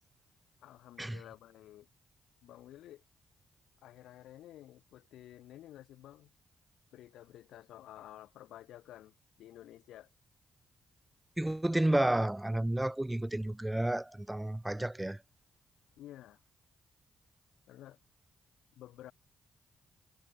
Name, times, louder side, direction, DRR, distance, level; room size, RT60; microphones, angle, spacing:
voice 1, 0.6-1.9 2.4-3.0 3.8-6.3 6.9-10.1 16.0-16.4 17.7-18.0 18.7-19.1, left 13 dB, 80° left, 1.7 m, -52 dB
voice 2, 11.4-15.2, right 1 dB, 15° right, 0.3 m, -31 dB
supercardioid pair, 50°, 0 cm